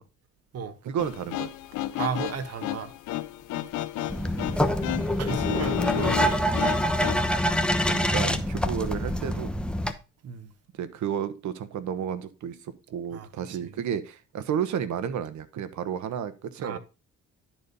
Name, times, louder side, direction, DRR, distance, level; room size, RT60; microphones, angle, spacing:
voice 1, 0.8-1.5 3.5-3.7 5.5-5.6 7.8-9.5 10.7-16.8, right 8 dB, 70° right, 1.1 m, -32 dB
sound 1, 1.0-7.2, left 15 dB, 85° left, 0.6 m, -32 dB
voice 2, 1.9-2.9 5.2-6.6 10.2-10.5 13.1-13.3 13.6-13.7 16.6-16.8, right 6 dB, 55° right, 1.2 m, -33 dB
sound 2, 4.1-9.9, equal, 5° left, 0.9 m, -26 dB
11.0 x 4.2 x 5.3 m
cardioid pair, 90°, 30 cm